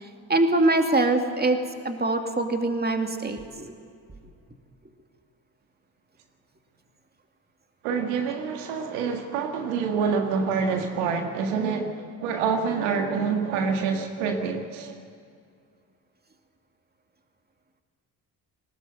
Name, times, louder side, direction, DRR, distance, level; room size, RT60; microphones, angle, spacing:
voice 1, 0.3-1.6 1.8-3.7, right 2 dB, 20° right, 5 dB, 2.5 m, -23 dB
voice 2, 7.8-15.0, right 5 dB, 80° right, 4 dB, 1.8 m, -27 dB
19.5 x 17.5 x 7.9 m, 2.3 s
hypercardioid pair, 50°, 48 cm